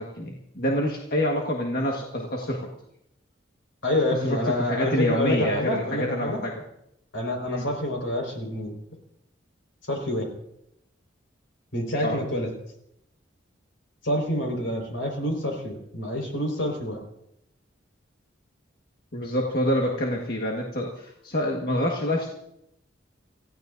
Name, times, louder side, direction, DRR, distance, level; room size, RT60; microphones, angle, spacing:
voice 1, 0.0-2.7 4.2-6.6 7.5-7.7 12.0-12.2 19.1-22.3, equal, 50° left, -1 dB, 1.6 m, -27 dB
voice 2, 3.8-6.4 7.1-8.7 9.9-10.3 11.7-12.5 14.0-17.0, left 1 dB, 80° left, 2 dB, 4.9 m, -27 dB
28.0 x 15.5 x 2.6 m, 0.78 s
head